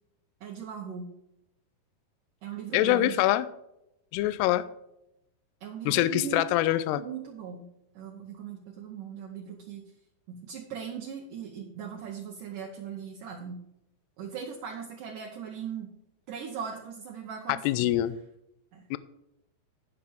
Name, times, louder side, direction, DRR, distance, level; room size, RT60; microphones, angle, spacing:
voice 1, 0.4-1.1 2.4-3.3 5.6-7.7 8.0-9.8 10.3-13.6 14.2-15.9 16.3-17.9 18.7-18.8, right 7 dB, 70° right, 0 dB, 2.0 m, -39 dB
voice 2, 2.7-3.5 4.1-4.7 5.9-7.0 17.5-18.2 18.9-19.0, left 14 dB, 80° left, 15 dB, 2.5 m, -24 dB
17.0 x 5.8 x 3.5 m, 0.83 s
omnidirectional pair, 5.1 m